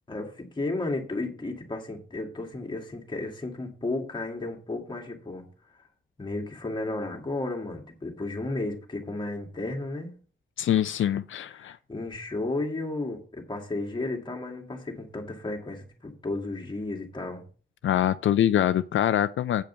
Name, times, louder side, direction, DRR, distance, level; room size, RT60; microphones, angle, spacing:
voice 1, 0.1-5.5 6.2-10.2 11.6-17.4, left 2 dB, 20° left, 2.1 m, -33 dB
voice 2, 10.6-11.8 17.8-19.6, left 11 dB, 75° left, 0.4 m, -24 dB
8.7 x 5.2 x 6.7 m
wide cardioid pair, 140°, 20 cm